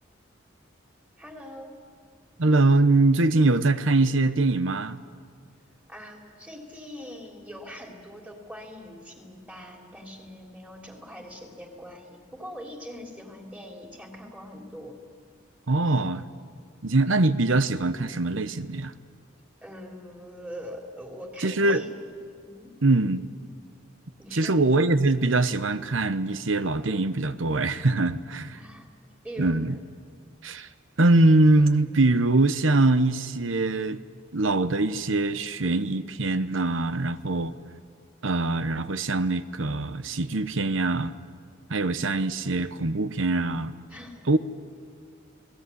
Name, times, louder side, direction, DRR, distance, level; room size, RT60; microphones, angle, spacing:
voice 1, 1.2-1.8 5.9-14.9 19.6-22.0 22.4-22.7 24.2-24.6 28.5-28.9 29.2-29.8 43.9-44.3, equal, 5° right, 2 dB, 3.3 m, -42 dB
voice 2, 2.4-5.0 15.7-16.2 16.8-18.9 21.4-21.8 22.8-23.3 24.3-28.6 29.4-29.8 30.4-30.7 31.0-34.0 34.3-37.5 38.2-41.1 41.7-43.7 44.3-44.4, right 2 dB, 75° right, 13 dB, 1.0 m, -23 dB
29.5 x 19.0 x 9.8 m, 2.1 s
head